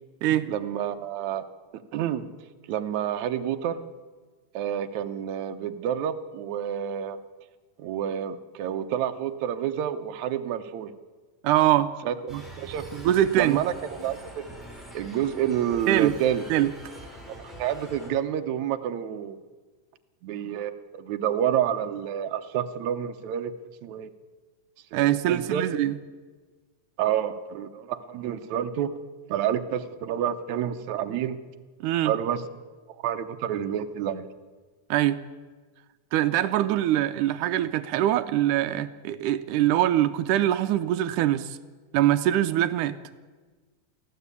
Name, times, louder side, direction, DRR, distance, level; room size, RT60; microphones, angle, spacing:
voice 1, 0.5-1.4 1.9-2.3 2.7-3.9 4.5-7.2 7.8-10.9 12.0-12.9 13.3-14.4 14.9-16.4 17.3-19.4 20.2-23.5 23.8-24.1 24.9-25.6 27.0-28.9 29.3-31.4 32.1-32.4 33.0-34.3, right 10 dB, 75° right, 7 dB, 2.2 m, -29 dB
voice 2, 11.4-11.9 12.3-12.4 12.9-13.6 15.9-16.1 16.5-16.7 24.9-26.0 31.8-32.1 34.9-35.2 36.1-41.6 41.9-43.0, right 13 dB, 90° right, 10 dB, 2.3 m, -23 dB
sound 1, 12.3-18.1, right 1 dB, ahead, 5.3 m, -44 dB
24.0 x 15.5 x 8.4 m, 1.4 s
omnidirectional pair, 3.5 m